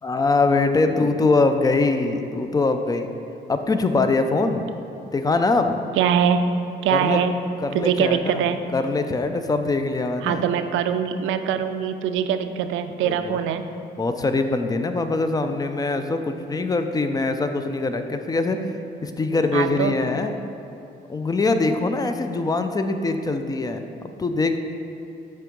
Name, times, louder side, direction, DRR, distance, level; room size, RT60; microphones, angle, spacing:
voice 1, 0.0-3.1 3.5-4.7 5.1-5.8 6.9-7.2 7.6-10.5 13.0-13.4 14.0-18.7 19.0-20.3 21.1-24.6, left 3 dB, 20° left, 7 dB, 0.4 m, -23 dB
voice 2, 5.9-6.4 6.8-7.4 7.7-8.6 10.2-13.6 19.5-20.0, right 8 dB, 85° right, 9 dB, 0.4 m, -22 dB
7.6 x 3.5 x 5.2 m, 2.8 s
cardioid pair, 90°, 20 cm